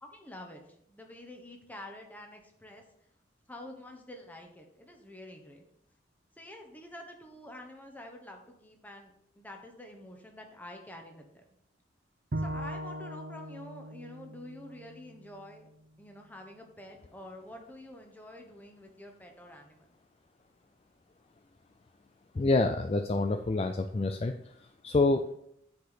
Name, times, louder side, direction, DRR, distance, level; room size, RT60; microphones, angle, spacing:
voice 1, 0.0-2.8 3.5-5.6 6.3-11.4 12.4-15.7 16.0-19.9, left 1 dB, 10° left, 2 dB, 1.1 m, -48 dB
Bowed string instrument, 12.3-15.6, right 1 dB, 50° right, 0.7 m, -39 dB
voice 2, 22.4-24.3 24.8-25.2, left 3 dB, 30° left, 7 dB, 0.3 m, -27 dB
9.2 x 5.0 x 4.0 m, 0.73 s
head